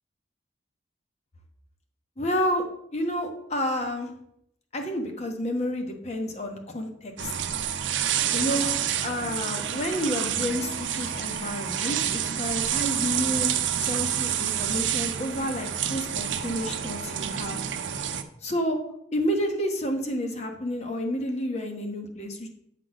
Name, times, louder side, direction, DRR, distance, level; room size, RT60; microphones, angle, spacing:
voice 1, 2.2-2.6 2.9-4.1 4.7-7.3 8.3-8.7 9.0-13.5 13.8-17.6 18.4-18.8 19.1-22.5, equal, 35° left, 4 dB, 1.0 m, -30 dB
sound 1, 7.2-18.2, right 9 dB, 85° right, 0.6 m, -28 dB
7.6 x 3.8 x 6.1 m, 0.74 s
head